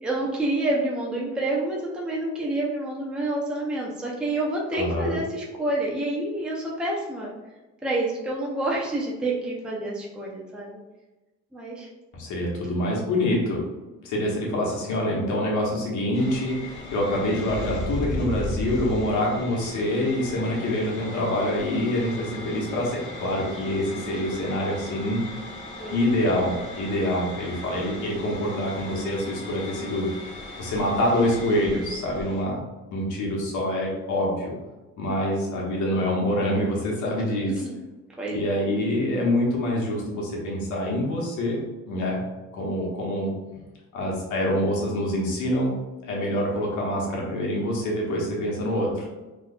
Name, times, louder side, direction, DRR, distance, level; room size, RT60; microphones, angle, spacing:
voice 1, 0.0-7.3 7.8-10.8 11.5-11.9 25.8-25.9 37.3-37.8 38.2-38.7, right 2 dB, 5° right, -4 dB, 0.5 m, -28 dB
voice 2, 4.7-5.2 12.1-13.6 14.0-25.3 25.9-30.1 30.6-32.6 32.9-34.6 35.0-37.5 38.3-41.6 41.9-42.2 42.5-43.3 43.9-45.7 46.0-49.0, left 1 dB, 80° left, -2 dB, 1.1 m, -26 dB
sound 1, 16.1-32.4, left 1 dB, 20° left, 1.1 m, -37 dB
3.9 x 3.0 x 2.2 m, 1.1 s
cardioid pair, 145°, 29 cm